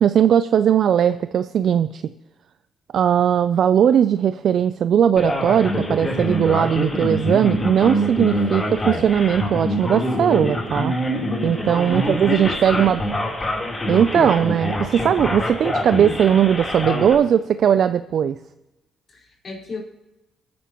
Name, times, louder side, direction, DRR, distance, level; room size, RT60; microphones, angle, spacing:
voice 1, 0.0-2.0 2.9-10.9 11.4-13.0 13.9-18.4, right 9 dB, 65° right, 12 dB, 0.4 m, -18 dB
Male speech man speaking, 5.2-17.1, left 1 dB, 25° left, 3.5 m, -25 dB
voice 2, 11.8-13.0 19.1-19.8, left 2 dB, 45° left, -2 dB, 4.4 m, -33 dB
23.5 x 9.5 x 3.0 m, 0.99 s
cardioid pair, 90°, 0 cm